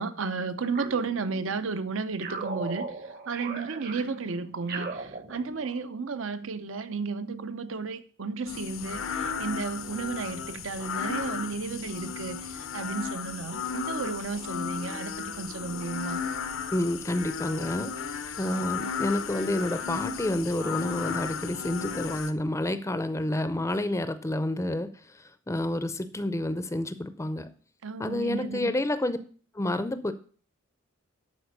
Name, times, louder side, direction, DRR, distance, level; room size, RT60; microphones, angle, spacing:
voice 1, 0.0-3.0 3.3-16.2 27.8-28.7, right 4 dB, 70° right, 0.7 m, -33 dB
sound 1, 0.7-1.7 2.2-5.9, right 4 dB, 50° right, 1.0 m, -38 dB
sound 2, 8.5-22.3, left 6 dB, 85° left, 0.9 m, -34 dB
voice 2, 16.7-17.9 18.4-24.9 25.5-27.5 28.0-29.2 29.6-30.1, left 1 dB, 15° left, 0.5 m, -29 dB
11.5 x 4.3 x 6.6 m
head